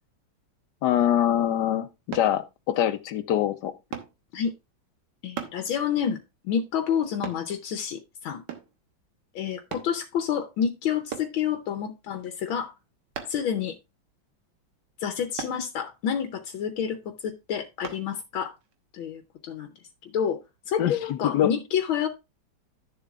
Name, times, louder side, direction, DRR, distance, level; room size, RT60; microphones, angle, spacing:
voice 1, 0.8-3.7 20.8-21.5, left 11 dB, 65° left, 1.3 m, -24 dB
sound 1, 2.1-2.3 3.9-4.2 5.4-5.6 7.2-7.5 8.5-8.8 9.7-9.9 11.1-11.4 13.1-13.5 15.4-15.6 17.8-18.0 18.6-18.7, right 8 dB, 65° right, 1.7 m, -36 dB
voice 2, 5.2-6.2 6.4-8.4 9.3-12.7 13.3-13.7 15.0-18.5 18.9-19.7 20.0-20.4 20.7-22.1, left 8 dB, 90° left, 1.6 m, -29 dB
12.0 x 7.1 x 2.4 m
omnidirectional pair, 2.1 m